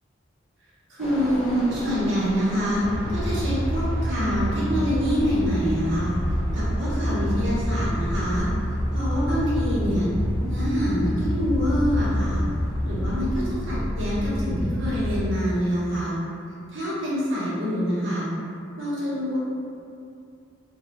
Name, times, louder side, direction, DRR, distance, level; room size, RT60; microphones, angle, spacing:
voice 1, 0.9-2.8 3.1-6.1 6.5-8.5 8.9-10.1 10.4-12.4 12.8-16.2 16.7-18.3 18.8-19.4, equal, 75° right, -8 dB, 0.9 m, -26 dB
sound 1, 1.0-13.7, equal, ahead, 0.5 m, -39 dB
sound 2, 2.8-15.3, equal, 75° left, 0.6 m, -27 dB
3.0 x 2.3 x 2.8 m, 2.5 s
head